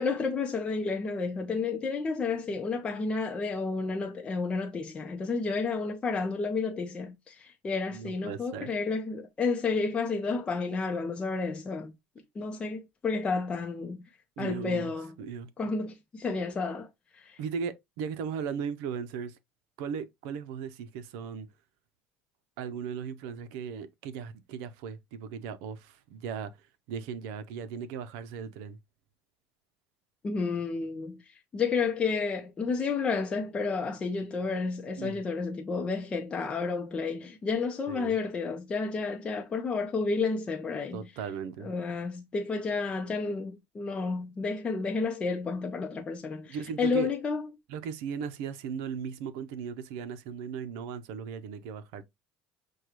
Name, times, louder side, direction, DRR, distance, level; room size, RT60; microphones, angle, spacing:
voice 1, 0.0-11.9 12.4-14.0 14.4-15.1 15.6-16.9 17.1-17.4 30.2-31.2 31.5-41.1 41.6-47.4, left 4 dB, 25° left, 0.6 m, -31 dB
voice 2, 7.9-8.7 14.4-14.9 15.2-15.5 17.4-19.4 19.8-21.5 22.6-26.5 26.9-28.8 35.0-35.2 37.9-38.1 40.9-41.7 46.5-47.1 47.7-52.0, right 6 dB, 80° right, 0.6 m, -37 dB
6.3 x 2.3 x 3.0 m
cardioid pair, 125°, 4 cm